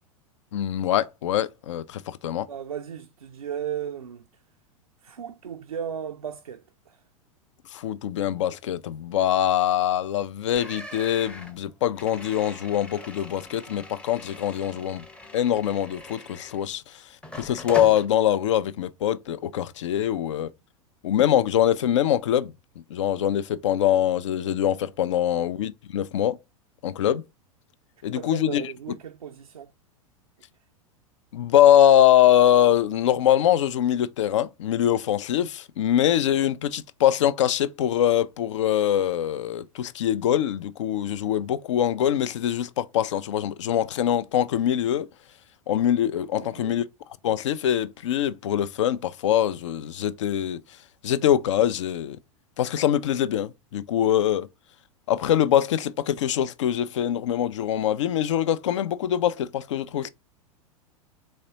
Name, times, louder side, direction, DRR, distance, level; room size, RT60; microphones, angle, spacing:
voice 1, 0.5-2.5 7.7-15.0 15.3-17.0 17.3-20.5 21.0-22.5 22.9-26.4 26.8-27.2 28.0-28.6 31.3-45.1 45.7-46.8 47.2-50.6 51.0-52.2 52.6-54.5 55.1-60.1, left 11 dB, 55° left, 0.4 m, -23 dB
voice 2, 2.5-4.3 5.0-7.0 25.3-25.5 28.1-29.7 46.4-46.8, right 8 dB, 75° right, 0.4 m, -36 dB
sound 1, 10.6-16.8 17.2-18.1, left 1 dB, 5° left, 0.6 m, -41 dB
4.1 x 3.3 x 2.8 m
figure-of-eight pair, 90°, 18 cm